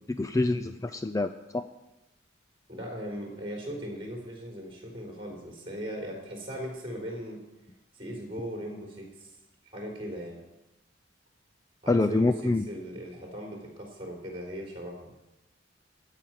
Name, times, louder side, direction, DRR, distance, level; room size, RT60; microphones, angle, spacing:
voice 1, 0.2-1.7 11.9-12.6, left 2 dB, 15° left, 9 dB, 0.4 m, -26 dB
voice 2, 2.7-7.4 7.9-9.3 9.7-10.4 11.8-15.1, equal, 30° right, 0 dB, 3.8 m, -38 dB
14.0 x 5.8 x 9.2 m, 0.99 s
head